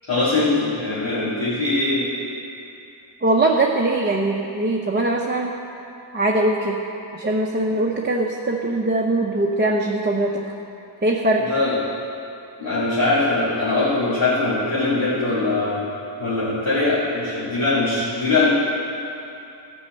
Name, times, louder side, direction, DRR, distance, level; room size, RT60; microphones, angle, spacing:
voice 1, 0.0-2.0 11.5-11.8 12.6-15.8 16.2-18.5, left 3 dB, 80° left, -13 dB, 3.0 m, -21 dB
voice 2, 3.2-5.5 6.1-6.8 7.1-10.4 11.0-11.4, right 2 dB, 25° right, -1 dB, 0.7 m, -21 dB
13.0 x 5.5 x 7.6 m, 2.8 s
wide cardioid pair, 105°, 46 cm